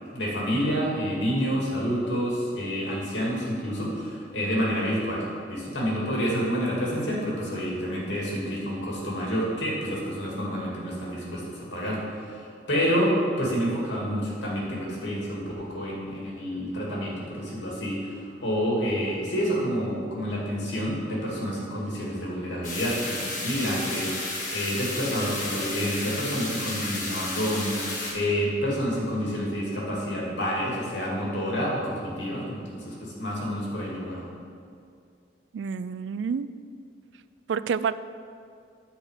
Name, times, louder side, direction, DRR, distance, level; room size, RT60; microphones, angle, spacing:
voice 1, 0.1-34.3, equal, 85° left, -4 dB, 2.6 m, -28 dB
sound 1, 22.6-28.1, left 2 dB, 45° left, 1.7 m, -32 dB
voice 2, 35.5-36.5 37.5-37.9, right 6 dB, 80° right, 15 dB, 0.3 m, -28 dB
10.0 x 4.4 x 7.4 m, 2.3 s
head